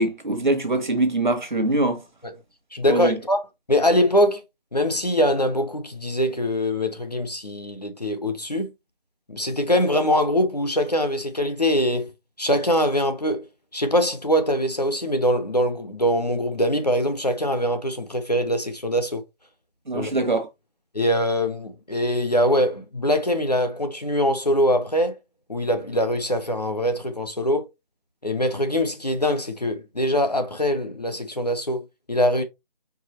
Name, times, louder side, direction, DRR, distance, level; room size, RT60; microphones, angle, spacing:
voice 1, 0.0-2.0 2.8-3.2 19.9-20.5, right 2 dB, 55° right, 1.2 m, -23 dB
voice 2, 2.7-3.4 3.7-4.4 4.7-8.7 9.3-12.1 12.4-13.5 13.7-19.2 19.9-20.1 20.9-25.2 25.5-27.7 28.2-32.4, equal, 45° left, 0.7 m, -23 dB
4.8 x 3.6 x 2.9 m
figure-of-eight pair, 180°, 29 cm